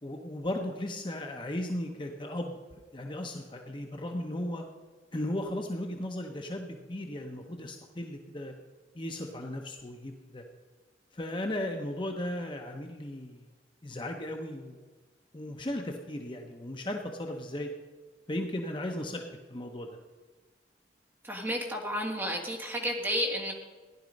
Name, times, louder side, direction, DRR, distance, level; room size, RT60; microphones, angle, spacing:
voice 1, 0.0-2.6 2.9-4.6 5.1-8.5 8.9-10.4 11.1-13.4 13.8-14.8 15.3-17.7 18.3-19.2 19.5-20.0, left 1 dB, 30° left, 3 dB, 0.9 m, -36 dB
voice 2, 21.2-23.5, equal, 10° right, 0 dB, 1.7 m, -31 dB
15.0 x 11.0 x 5.3 m, 1.4 s
head